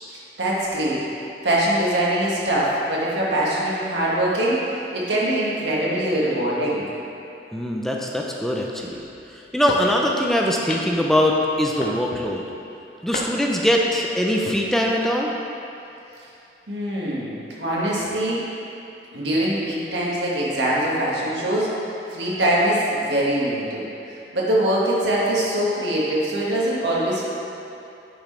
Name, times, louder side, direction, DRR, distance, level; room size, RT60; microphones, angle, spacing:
voice 1, 0.1-1.0 1.4-6.9 16.7-18.4 19.1-27.2, right 1 dB, 80° right, -6 dB, 1.7 m, -23 dB
voice 2, 7.5-9.0 9.5-12.5 13.0-15.3, left 1 dB, ahead, -1 dB, 0.4 m, -22 dB
sound 1, 9.7-10.0 10.7-11.1 11.8-12.3 13.1-13.6 14.3-14.6, left 3 dB, 45° left, 0.6 m, -32 dB
9.8 x 6.2 x 3.2 m, 2.8 s
head